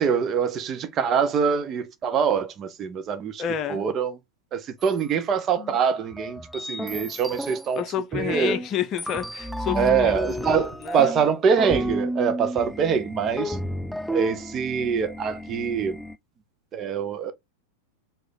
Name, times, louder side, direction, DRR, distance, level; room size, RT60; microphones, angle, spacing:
voice 1, 0.0-3.4 3.7-4.2 4.5-7.8 8.1-8.6 9.7-13.6 14.1-16.0 16.7-17.3, right 6 dB, 30° right, 0.8 m, -24 dB
voice 2, 3.4-3.9 5.6-5.8 7.8-10.5 10.8-11.1, left 9 dB, 35° left, 0.8 m, -30 dB
sound 1, 4.8-5.0 5.5-5.6 6.1-7.7 8.1-8.7 9.0-16.2, equal, ahead, 0.3 m, -32 dB
4.8 x 2.5 x 4.1 m
figure-of-eight pair, 90°, 0 cm